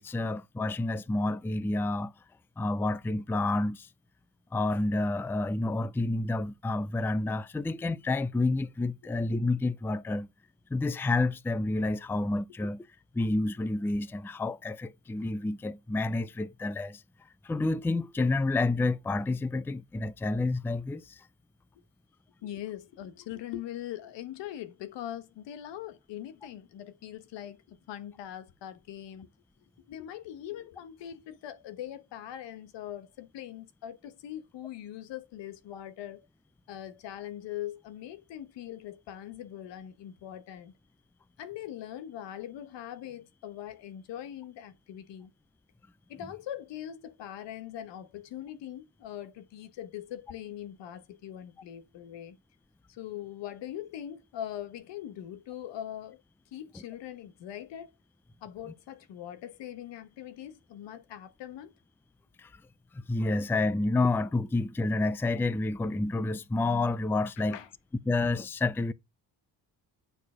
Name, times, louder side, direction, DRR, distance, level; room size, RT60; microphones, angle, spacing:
voice 1, 0.0-2.1 2.6-3.9 4.5-10.3 10.7-12.9 13.1-17.0 17.4-21.2 62.4-62.5 63.1-67.6 68.1-68.9, left 2 dB, 5° left, 0.4 m, -29 dB
voice 2, 22.4-29.3 29.9-36.3 36.7-40.7 41.4-45.3 46.1-52.4 52.9-56.2 56.5-57.9 58.4-61.7 67.4-67.7, left 11 dB, 85° left, 1.2 m, -41 dB
9.0 x 4.6 x 4.9 m
cardioid pair, 100°, 42 cm